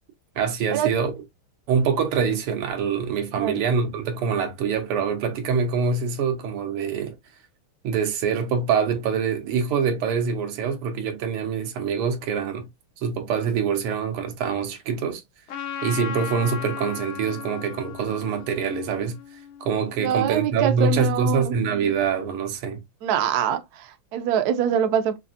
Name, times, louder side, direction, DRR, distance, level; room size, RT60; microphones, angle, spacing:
voice 1, 0.4-1.1 1.7-7.2 7.8-12.7 13.0-15.2 15.8-19.2 19.6-22.8, right 6 dB, 85° right, 1.8 m, -25 dB
Trumpet, 15.5-20.2, left 7 dB, 90° left, 1.7 m, -36 dB
voice 2, 20.0-21.6 23.0-25.2, right 9 dB, 70° right, 0.9 m, -24 dB
5.2 x 2.5 x 2.6 m
omnidirectional pair, 2.4 m